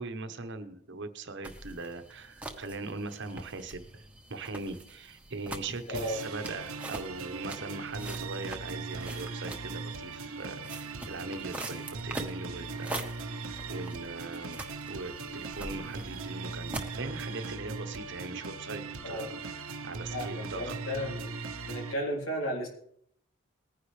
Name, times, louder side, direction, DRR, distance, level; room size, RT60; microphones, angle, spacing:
voice 1, 0.0-4.0 4.3-13.0 13.7-14.6 14.9-20.8, right 3 dB, 60° right, 8 dB, 1.1 m, -40 dB
sound 1, 1.4-17.0, right 2 dB, 5° right, 1.2 m, -44 dB
sound 2, 5.9-21.9, right 4 dB, 90° right, 1.0 m, -39 dB
voice 2, 20.1-21.3 21.6-22.7, equal, 65° left, -1 dB, 3.8 m, -34 dB
19.5 x 10.0 x 3.3 m, 0.67 s
head